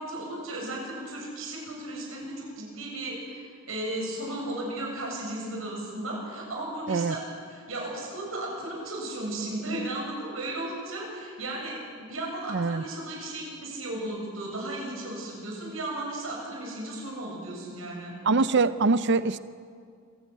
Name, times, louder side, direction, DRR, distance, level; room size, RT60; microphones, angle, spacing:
voice 1, 0.0-7.2 7.5-11.8 12.1-18.2, right 1 dB, 80° right, -1 dB, 7.6 m, -35 dB
voice 2, 12.5-12.8 18.2-19.4, right 3 dB, 60° right, 13 dB, 0.6 m, -23 dB
26.5 x 16.5 x 9.2 m, 2.2 s
head